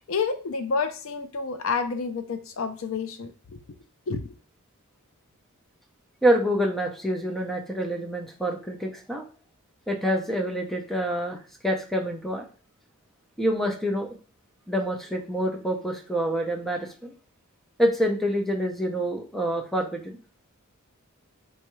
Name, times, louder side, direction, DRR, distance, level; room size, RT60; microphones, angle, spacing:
voice 1, 0.1-3.6 4.1-4.3, left 5 dB, 65° left, 8 dB, 0.5 m, -29 dB
voice 2, 6.2-9.2 9.9-12.5 13.4-14.1 14.7-17.1 17.8-20.2, equal, ahead, 2 dB, 0.6 m, -26 dB
4.6 x 3.4 x 3.1 m, 0.37 s
head